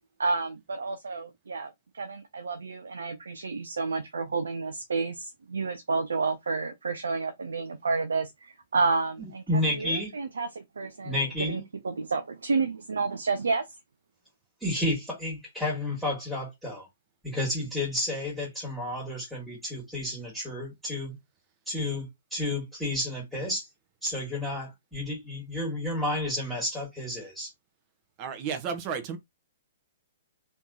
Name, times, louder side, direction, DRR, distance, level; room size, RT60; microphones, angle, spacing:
voice 1, 0.2-1.7 2.0-8.3 8.7-13.6, right 4 dB, 75° right, 0.5 m, -30 dB
voice 2, 9.5-10.1 11.0-11.6 14.6-16.9 17.2-21.2 21.7-23.7 24.0-27.5, left 1 dB, ahead, 1.7 m, -31 dB
voice 3, 28.2-29.2, right 6 dB, 35° right, 1.0 m, -32 dB
3.4 x 3.1 x 2.7 m
figure-of-eight pair, 120°, 0 cm